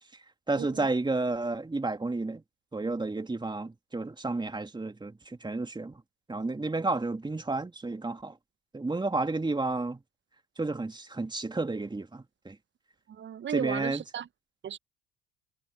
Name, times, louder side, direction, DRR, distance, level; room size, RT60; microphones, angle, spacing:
voice 1, 0.1-2.4 2.7-6.0 6.3-8.4 8.7-10.0 10.6-12.6 13.5-14.0, right 3 dB, 15° right, 2.8 m, -31 dB
voice 2, 13.1-14.3 14.6-14.8, right 9 dB, 35° right, 1.0 m, -34 dB
figure-of-eight pair, 60°, 34 cm